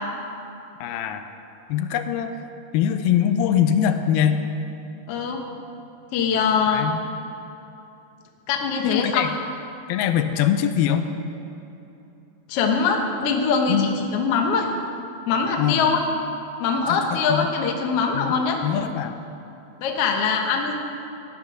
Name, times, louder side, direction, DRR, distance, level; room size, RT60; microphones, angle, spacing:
voice 1, 0.8-1.2 1.7-2.4 2.7-4.4 6.7-7.0 8.8-9.3 9.9-11.1 13.7-13.9 15.6-15.8 17.3-17.5 18.1-18.4 18.6-19.3, left 9 dB, 85° left, 8 dB, 2.6 m, -22 dB
voice 2, 5.1-5.4 6.1-6.9 8.5-9.2 12.5-14.7 15.3-16.0 16.6-18.6 19.8-20.7, left 5 dB, 65° left, 2 dB, 1.5 m, -22 dB
13.5 x 10.5 x 6.2 m, 3.0 s
omnidirectional pair, 4.3 m